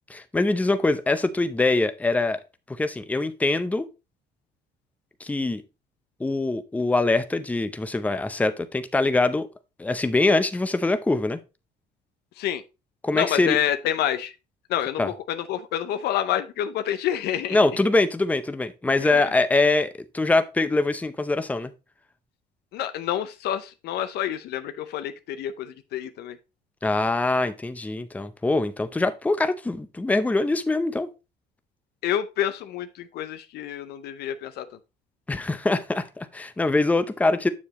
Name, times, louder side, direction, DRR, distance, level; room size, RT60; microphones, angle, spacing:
voice 1, 0.1-2.4 2.7-3.9 5.2-5.6 6.2-9.5 9.8-11.4 13.0-13.6 15.0-15.1 17.5-21.7 26.8-31.1 35.3-37.5, left 2 dB, 10° left, 0.6 m, -23 dB
voice 2, 13.1-14.3 14.7-17.6 19.0-19.2 22.7-26.4 32.0-34.8, left 11 dB, 75° left, 0.6 m, -28 dB
7.2 x 6.6 x 3.0 m
cardioid pair, 110°, 17 cm